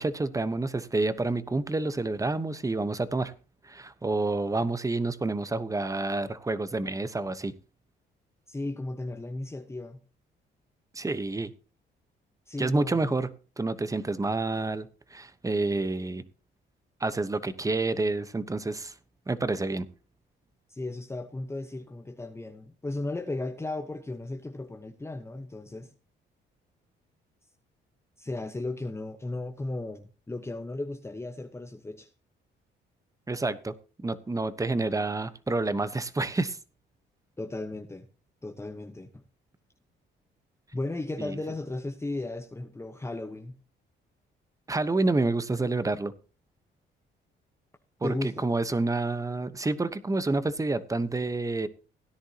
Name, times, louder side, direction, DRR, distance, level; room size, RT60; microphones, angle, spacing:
voice 1, 0.0-3.3 3.6-7.5 10.9-11.5 12.6-13.3 13.6-16.2 17.0-18.9 19.3-19.9 33.3-33.7 34.0-36.6 41.2-41.4 44.7-46.1 48.0-51.7, right 2 dB, 15° right, 1.0 m, -28 dB
voice 2, 8.5-10.0 12.5-13.0 20.7-25.9 28.2-32.1 37.4-38.1 38.4-39.2 40.7-43.6 48.0-48.5, left 2 dB, 15° left, 1.0 m, -35 dB
17.0 x 10.0 x 2.9 m
cardioid pair, 90°, 20 cm